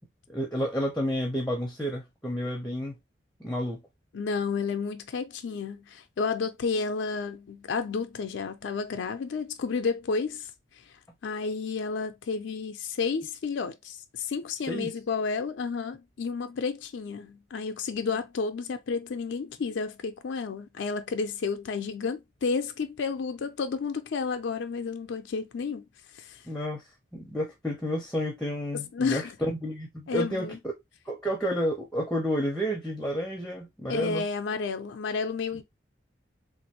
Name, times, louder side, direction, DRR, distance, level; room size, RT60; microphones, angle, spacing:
voice 1, 0.3-3.0 3.4-3.8 14.7-14.9 26.5-26.8 27.1-30.7 31.1-34.2, equal, 5° left, 0.6 m, -30 dB
voice 2, 4.1-10.5 11.2-25.9 26.1-26.4 28.7-29.4 30.1-30.6 33.9-35.6, left 5 dB, 85° left, 0.4 m, -31 dB
3.4 x 2.5 x 2.8 m
head